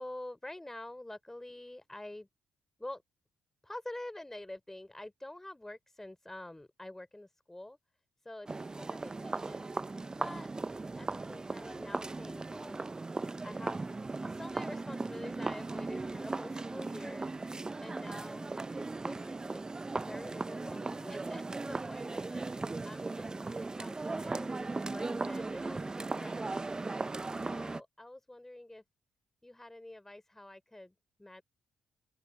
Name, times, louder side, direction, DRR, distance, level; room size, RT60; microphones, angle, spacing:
voice 1, 0.0-2.3 2.8-3.0 3.6-7.8 8.2-8.5 8.8-9.7 10.2-10.5 11.0-12.9 13.4-17.3 17.8-19.6 20.0-22.5 22.9-26.4 27.4-28.8 29.4-31.4, left 1 dB, 15° left, 3.7 m, -47 dB
sound 1, 8.5-27.8, right 3 dB, 25° right, 0.9 m, -38 dB
open air
hypercardioid pair, 40°, 3 cm